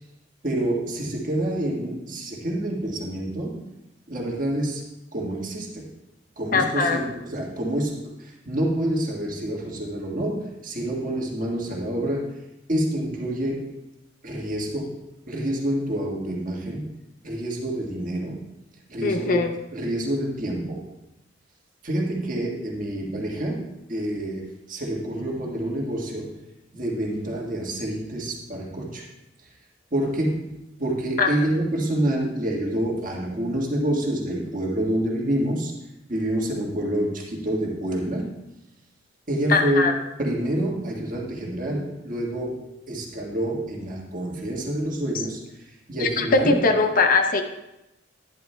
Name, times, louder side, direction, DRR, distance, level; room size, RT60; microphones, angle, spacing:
voice 1, 0.4-3.7 4.1-4.8 5.1-5.9 6.4-12.3 12.7-13.7 14.2-16.9 17.2-18.4 18.9-20.9 21.8-26.4 26.7-29.0 29.9-30.5 30.8-35.7 36.1-38.4 39.3-45.4 45.9-46.6, right 1 dB, 45° right, -1 dB, 1.6 m, -27 dB
voice 2, 6.5-7.0 19.0-19.5 31.2-31.3 39.5-39.9 46.0-47.4, left 3 dB, 45° left, 6 dB, 0.6 m, -20 dB
11.0 x 10.5 x 2.3 m, 0.92 s
head